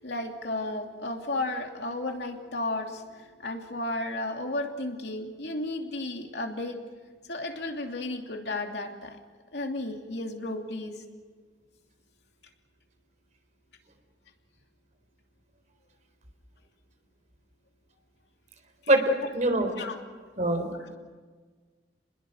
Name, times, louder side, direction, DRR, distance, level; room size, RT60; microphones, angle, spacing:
voice 1, 0.0-6.8 7.3-9.2 9.5-11.0 19.8-20.0, left 2 dB, 70° left, 3 dB, 2.9 m, -33 dB
voice 2, 18.9-19.7 20.4-20.7, right 1 dB, 45° right, 6 dB, 3.8 m, -24 dB
29.0 x 21.0 x 6.6 m, 1.5 s
head